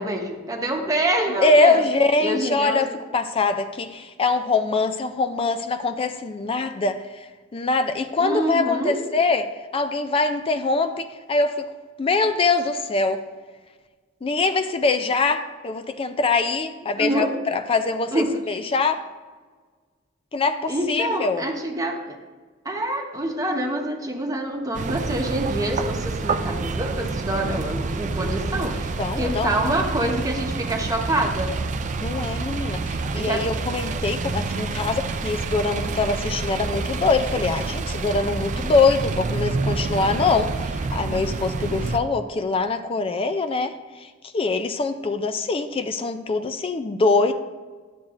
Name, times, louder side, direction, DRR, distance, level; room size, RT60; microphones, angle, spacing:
voice 1, 0.0-1.8 2.2-2.9 8.2-9.0 17.0-17.3 18.1-18.3 20.7-22.2 22.6-31.5 33.2-33.4, right 1 dB, 20° right, 2 dB, 1.0 m, -26 dB
voice 2, 1.4-7.3 7.5-11.7 12.0-13.2 14.2-19.0 20.3-21.5 28.5-28.6 29.0-29.5 32.0-43.7 44.0-44.1 44.3-47.3, left 3 dB, 30° left, 8 dB, 0.4 m, -23 dB
sound 1, 24.7-42.0, right 3 dB, 40° right, 0.4 m, -28 dB
11.5 x 7.2 x 2.5 m, 1.4 s
head